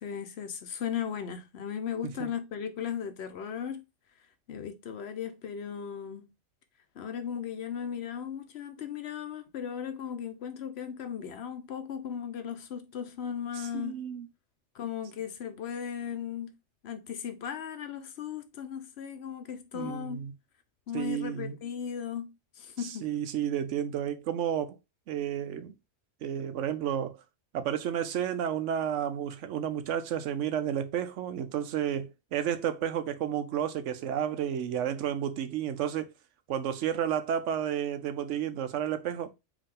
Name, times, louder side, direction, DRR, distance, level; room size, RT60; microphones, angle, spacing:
voice 1, 0.0-3.8 4.5-6.3 6.9-14.0 14.7-16.6 16.8-20.2 20.9-22.3 22.6-23.1, left 8 dB, 65° left, 0.9 m, -37 dB
voice 2, 13.6-14.3 19.7-20.3 20.9-21.5 22.8-24.8 25.1-25.7 26.2-27.2 27.5-36.1 36.5-39.3, right 9 dB, 85° right, 1.0 m, -31 dB
4.8 x 2.7 x 3.6 m
omnidirectional pair, 1.2 m